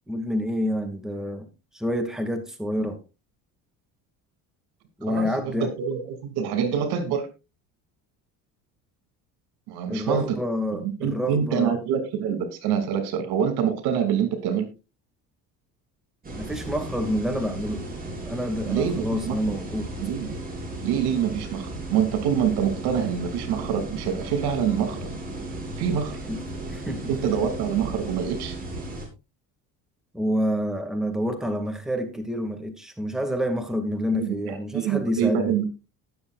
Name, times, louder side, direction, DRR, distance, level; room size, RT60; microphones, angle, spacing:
voice 1, 0.1-1.5 1.7-3.0 5.0-5.7 9.9-11.8 16.4-17.9 18.2-19.9 26.3-26.4 26.7-27.1 30.1-35.5, equal, ahead, 2.2 m, -28 dB
voice 2, 5.1-7.3 9.7-10.4 10.7-14.7 18.6-19.4 20.0-20.4 20.8-25.1 25.8-26.2 27.1-28.6 34.1-35.7, right 8 dB, 75° right, 2.7 m, -26 dB
sound 1, 16.2-29.1, right 1 dB, 20° right, 6.2 m, -35 dB
19.5 x 7.1 x 2.5 m
supercardioid pair, 95°, 39 cm